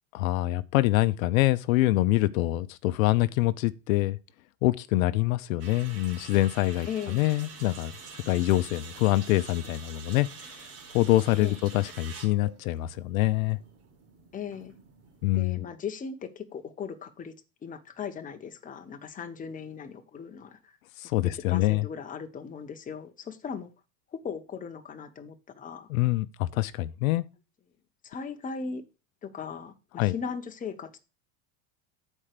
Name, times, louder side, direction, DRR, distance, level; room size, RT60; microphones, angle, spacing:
voice 1, 0.1-4.2 4.6-10.5 10.9-13.6 15.2-15.6 21.0-21.9 25.9-27.2 30.0-30.1, left 17 dB, 80° left, 0.7 m, -25 dB
sound 1, 5.6-15.5, right 5 dB, 35° right, 1.7 m, -47 dB
voice 2, 6.9-7.2 11.4-11.6 14.3-14.7 15.3-17.3 17.6-20.8 21.2-23.7 24.1-25.9 28.0-28.8 29.2-31.0, left 6 dB, 20° left, 1.0 m, -38 dB
7.3 x 4.6 x 6.6 m
supercardioid pair, 125°, 40 cm